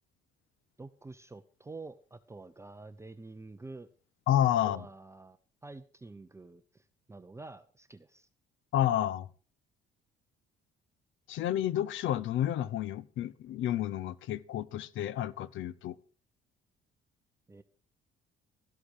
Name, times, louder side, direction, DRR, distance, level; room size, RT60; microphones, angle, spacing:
voice 1, 0.8-3.9 4.6-5.4 5.6-8.3 17.5-17.6, right 3 dB, 15° right, 0.8 m, -48 dB
voice 2, 4.3-4.9 8.7-9.3 11.3-16.0, left 11 dB, 75° left, 0.9 m, -30 dB
13.5 x 11.5 x 4.9 m
cardioid pair, 110°, 20 cm